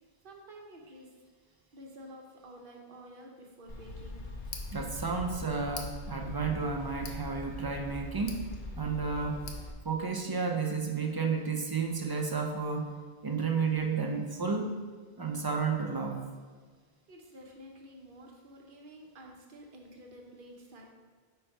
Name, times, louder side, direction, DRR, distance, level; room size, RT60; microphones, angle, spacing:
voice 1, 0.2-1.1 1.7-4.3 17.1-20.9, equal, 60° right, 0 dB, 1.0 m, -50 dB
Tick, 3.7-9.7, left 2 dB, 55° left, 0.8 m, -41 dB
voice 2, 4.7-8.5 8.8-9.5 9.8-12.9 13.2-14.8 15.2-16.3, right 5 dB, 40° right, 2 dB, 0.3 m, -32 dB
5.0 x 4.5 x 4.4 m, 1.5 s
omnidirectional pair, 1.1 m